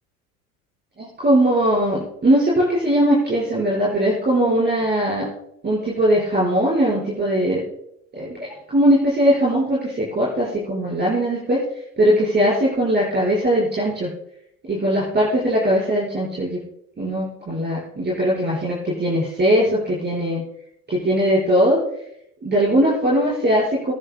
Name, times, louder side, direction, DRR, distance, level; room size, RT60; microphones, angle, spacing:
voice 1, 1.0-5.3 5.6-7.6 8.1-11.6 12.0-14.1 14.7-16.6 17.0-20.4 20.9-21.8 22.4-23.9, equal, 20° right, -6 dB, 5.0 m, -20 dB
24.0 x 9.8 x 2.2 m, 0.76 s
figure-of-eight pair, 75°, 46 cm